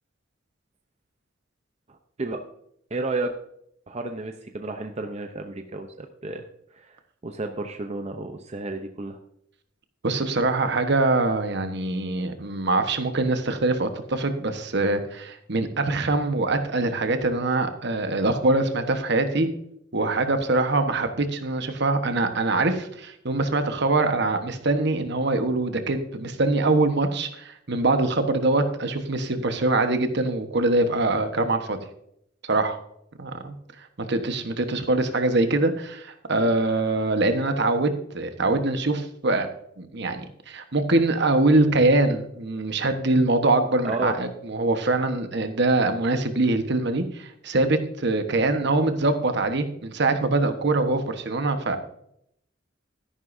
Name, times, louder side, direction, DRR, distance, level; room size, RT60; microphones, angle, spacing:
voice 1, 1.9-2.4 2.9-3.3 3.9-6.4 6.7-9.2 43.8-44.1, right 2 dB, 35° right, 5 dB, 0.7 m, -32 dB
voice 2, 10.0-19.5 19.9-31.8 32.5-32.8 33.2-33.5 34.0-39.5 39.8-51.8, right 2 dB, 60° right, 7 dB, 1.2 m, -23 dB
13.0 x 11.0 x 2.7 m, 0.72 s
head